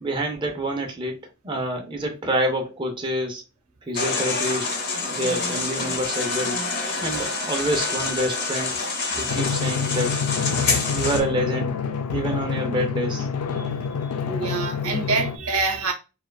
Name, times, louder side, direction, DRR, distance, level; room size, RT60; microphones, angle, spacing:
voice 1, 0.0-3.4 3.9-4.7 5.1-6.6 6.9-8.8 9.2-11.7 12.1-13.3, right 1 dB, 20° right, 0.5 m, -27 dB
sound 1, 3.9-11.2, left 3 dB, 50° left, 0.8 m, -27 dB
Wind instrument woodwind instrument, 6.0-10.7, left 2 dB, 55° right, 1.6 m, -41 dB
voice 2, 6.8-7.3 10.9-11.1 12.1-12.2 13.5-15.9, right 3 dB, 85° right, 0.8 m, -28 dB
Drum, 9.3-15.4, left 6 dB, 85° left, 0.4 m, -27 dB
4.4 x 2.3 x 2.3 m
head